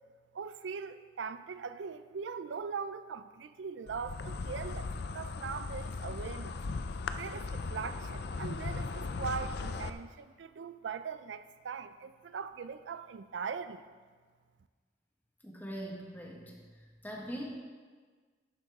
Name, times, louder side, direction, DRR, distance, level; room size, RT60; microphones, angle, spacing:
voice 1, 0.3-6.6 7.1-13.8, right 6 dB, 80° right, 12 dB, 0.4 m, -41 dB
Insect, 3.9-9.9, left 4 dB, 60° left, 0.5 m, -38 dB
voice 2, 15.4-17.4, equal, 10° left, -2 dB, 1.5 m, -42 dB
12.0 x 8.5 x 3.6 m, 1.5 s
head